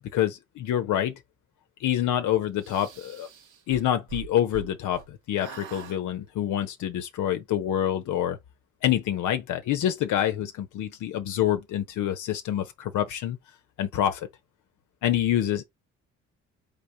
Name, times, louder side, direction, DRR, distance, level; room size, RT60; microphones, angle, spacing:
voice 1, 0.1-1.2 1.8-3.3 3.7-8.4 8.8-13.4 13.8-14.3 15.0-15.7, left 11 dB, 80° left, 0.8 m, -26 dB
sound 1, 2.6-5.1 5.4-6.0, right 8 dB, 90° right, 1.8 m, -42 dB
3.8 x 3.6 x 3.9 m
cardioid pair, 90°, 30 cm